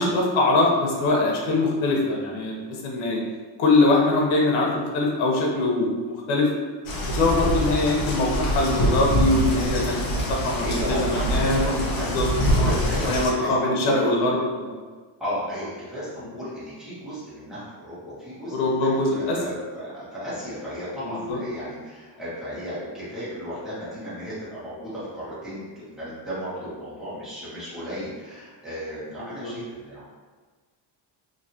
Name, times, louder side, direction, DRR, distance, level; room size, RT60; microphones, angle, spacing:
voice 1, 0.0-3.2 3.6-6.5 7.1-11.7 12.1-12.3 12.5-12.7 13.1-14.8 18.5-19.4 21.1-21.4 29.2-29.5, left 2 dB, 80° left, -1 dB, 0.9 m, -23 dB
sound 1, 6.9-13.3, equal, 45° left, 0.7 m, -25 dB
voice 2, 10.6-14.0 15.2-30.1, equal, ahead, -12 dB, 1.3 m, -34 dB
3.2 x 2.7 x 2.7 m, 1.4 s
cardioid pair, 140°, 47 cm